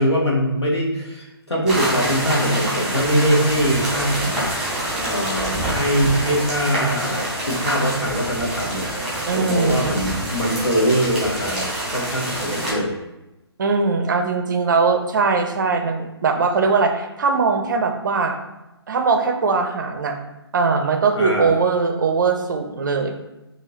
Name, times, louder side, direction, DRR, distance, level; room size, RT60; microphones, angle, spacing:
voice 1, 0.0-4.4 5.0-12.9 21.2-21.5, equal, 75° left, -3 dB, 1.3 m, -22 dB
sound 1, 1.7-12.7, right 1 dB, 5° right, 1.2 m, -26 dB
voice 2, 9.3-10.0 13.6-18.4 18.9-20.2 20.5-23.2, right 4 dB, 45° right, 5 dB, 0.5 m, -20 dB
5.3 x 2.8 x 2.8 m, 0.98 s
figure-of-eight pair, 135°, 14 cm